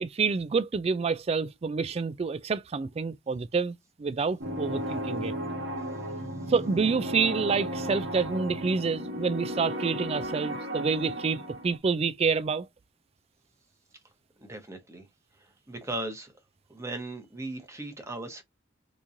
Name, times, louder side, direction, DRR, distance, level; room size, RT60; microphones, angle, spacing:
voice 1, 0.0-5.3 6.5-12.7, right 5 dB, 30° right, 0.3 m, -28 dB
sound 1, 4.4-11.8, equal, 70° right, 1.2 m, -34 dB
voice 2, 14.4-15.1 15.7-16.3 16.7-18.4, right 2 dB, 15° right, 0.9 m, -37 dB
3.6 x 3.0 x 2.6 m
head